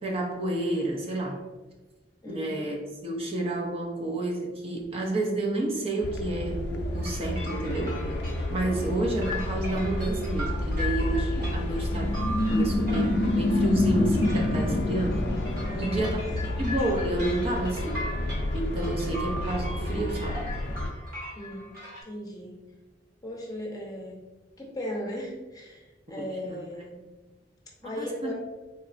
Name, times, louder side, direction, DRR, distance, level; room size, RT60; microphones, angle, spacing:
voice 1, 0.0-1.4 2.2-2.8 3.0-8.0 8.5-12.1 12.5-15.3 15.7-16.2 16.6-18.1 18.5-20.5 26.2-26.6 27.8-28.3, right 2 dB, 35° right, -1 dB, 0.5 m, -30 dB
voice 2, 2.2-2.6 15.7-16.2 16.4-16.6 21.3-21.7 22.0-22.5 23.2-24.2 24.6-27.0 27.8-28.3, equal, 20° left, -2 dB, 0.7 m, -37 dB
sound 1, 6.0-20.9, left 1 dB, 65° left, 0.4 m, -28 dB
sound 2, 6.9-22.0, left 1 dB, 55° right, 0.8 m, -40 dB
3.9 x 3.2 x 2.5 m, 1.1 s
head